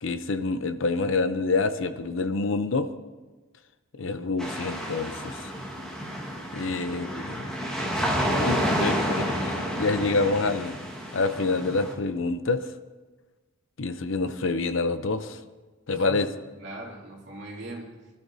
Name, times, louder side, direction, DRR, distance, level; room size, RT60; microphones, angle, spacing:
voice 1, 0.0-2.9 4.0-5.5 6.5-7.5 8.4-10.8 11.1-12.7 13.8-15.4 15.9-16.3, left 3 dB, 60° left, 10 dB, 0.7 m, -27 dB
sound 1, 4.4-11.9, equal, 5° left, 1.6 m, -30 dB
voice 2, 8.0-8.6 15.9-16.2 16.6-17.9, right 1 dB, 55° right, -3 dB, 2.9 m, -39 dB
24.0 x 12.5 x 2.7 m, 1.2 s
head